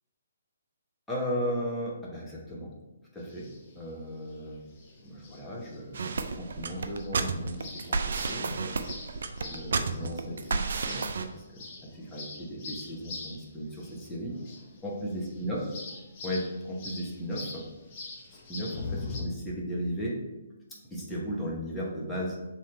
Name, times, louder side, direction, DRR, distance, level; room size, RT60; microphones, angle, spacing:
voice 1, 1.1-2.7 3.1-3.5 3.8-4.6 5.0-8.9 9.4-11.3 11.5-11.6 12.0-14.4 14.8-15.7 16.2-17.6 18.5-20.2 20.7-22.4, equal, 5° left, -5 dB, 1.1 m, -36 dB
sound 1, 3.2-19.2, left 3 dB, 40° left, 0.9 m, -44 dB
sound 2, 5.9-11.2, right 4 dB, 65° right, 0.4 m, -31 dB
3.7 x 3.0 x 4.4 m, 1.0 s
hypercardioid pair, 140°, 0 cm